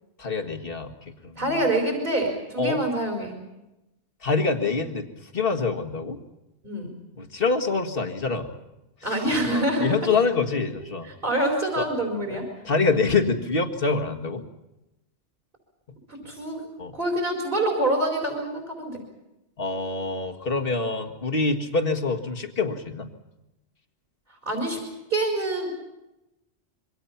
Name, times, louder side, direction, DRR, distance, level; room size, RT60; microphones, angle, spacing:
voice 1, 0.2-1.6 2.6-2.8 4.2-5.1 5.3-6.2 7.2-8.5 9.5-11.1 11.8-11.9 12.6-14.4 16.8-16.9 19.6-23.1, left 4 dB, 55° left, 4 dB, 2.0 m, -25 dB
voice 2, 1.4-3.3 6.6-6.9 9.0-10.0 11.0-12.4 16.2-16.7 16.9-19.0 24.4-24.8 25.1-25.7, right 1 dB, 50° right, 0 dB, 4.8 m, -26 dB
26.5 x 24.0 x 5.8 m, 0.95 s
omnidirectional pair, 1.1 m